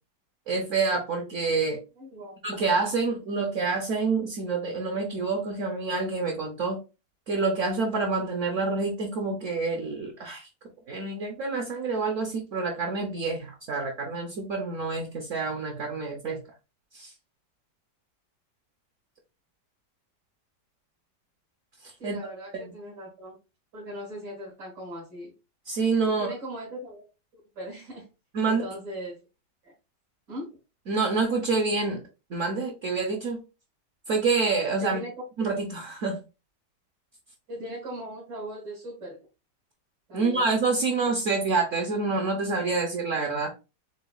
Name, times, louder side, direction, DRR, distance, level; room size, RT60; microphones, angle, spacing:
voice 1, 0.5-1.8 2.4-6.8 7.3-10.5 10.9-16.4 16.9-17.1 22.0-22.2 22.6-22.7 25.7-26.3 28.3-28.6 30.9-32.0 32.3-33.4 34.1-35.0 35.4-36.2 40.1-43.5, right 4 dB, 60° right, 2 dB, 0.9 m, -27 dB
voice 2, 2.0-2.4 22.0-23.4 23.7-25.3 26.1-27.1 27.3-28.1 28.4-29.2 29.6-29.7 30.3-30.5 34.8-35.1 37.5-39.2 40.1-40.5, equal, 80° right, -7 dB, 2.7 m, -39 dB
6.7 x 2.3 x 2.3 m, 0.29 s
omnidirectional pair, 1.9 m